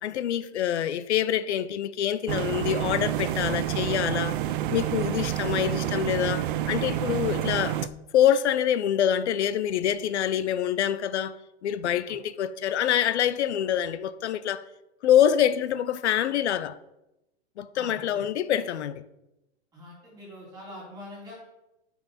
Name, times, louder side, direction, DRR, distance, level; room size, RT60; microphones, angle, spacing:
voice 1, 0.0-4.4 4.7-7.8 8.1-11.4 11.6-14.6 15.0-16.8 17.6-19.0, left 10 dB, 85° left, 0.6 m, -25 dB
sound 1, 2.3-7.9, right 12 dB, 50° right, 0.4 m, -28 dB
voice 2, 17.7-18.2 19.7-21.3, left 1 dB, 10° right, 3.5 m, -44 dB
9.5 x 5.9 x 4.2 m
hypercardioid pair, 160°, 33 cm